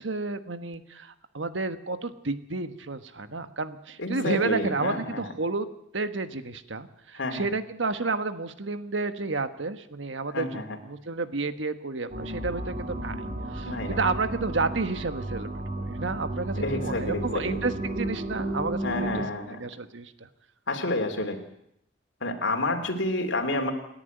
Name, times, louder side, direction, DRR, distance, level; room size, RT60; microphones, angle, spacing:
voice 1, 0.0-5.7 5.9-13.2 13.5-15.5 15.8-20.3, right 3 dB, 85° right, 10 dB, 1.4 m, -31 dB
voice 2, 4.0-5.3 7.1-7.5 10.3-10.8 13.7-14.0 16.5-17.6 18.8-19.7 20.7-21.4 22.2-23.7, left 2 dB, 80° left, 4 dB, 2.8 m, -29 dB
sound 1, 12.1-19.3, right 1 dB, 45° right, 2.7 m, -33 dB
28.0 x 11.0 x 9.2 m, 0.76 s
head